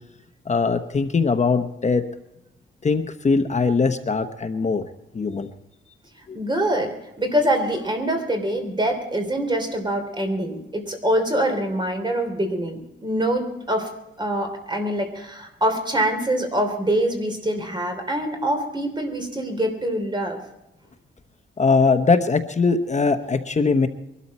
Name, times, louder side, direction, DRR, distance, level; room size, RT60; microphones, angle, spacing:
voice 1, 0.5-2.0 2.8-4.8 5.1-5.5 21.6-23.9, left 4 dB, 35° left, 8 dB, 0.9 m, -21 dB
voice 2, 6.3-13.9 14.2-20.4, right 1 dB, 20° right, 5 dB, 3.2 m, -24 dB
22.5 x 12.5 x 4.2 m, 0.89 s
wide cardioid pair, 120°, 21 cm